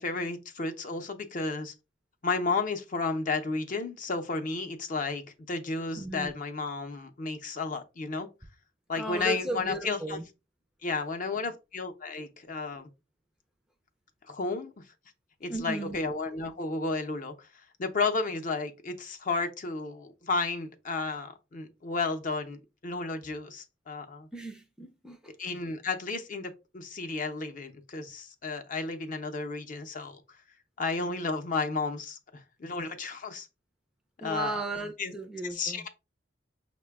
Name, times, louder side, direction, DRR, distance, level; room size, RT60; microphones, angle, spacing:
voice 1, 0.0-1.7 2.2-8.3 8.9-10.2 10.8-12.9 14.3-14.7 15.4-24.3 25.4-30.2 30.8-33.5 34.2-34.6 35.0-35.1 35.5-35.9, left 3 dB, 45° left, 0.6 m, -33 dB
voice 2, 6.0-6.3 9.0-10.2 15.5-16.0 24.3-25.2 34.2-35.8, right 1 dB, 5° right, 0.4 m, -35 dB
5.6 x 2.2 x 3.4 m
head